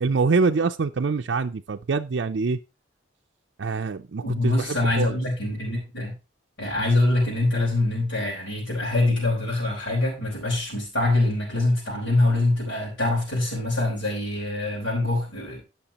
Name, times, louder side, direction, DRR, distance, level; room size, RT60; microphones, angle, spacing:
voice 1, 0.0-2.6 3.6-5.2, right 4 dB, 70° right, 0.5 m, -25 dB
voice 2, 4.2-6.1 6.6-15.6, left 2 dB, 80° left, 4.3 m, -24 dB
17.0 x 5.8 x 2.9 m
head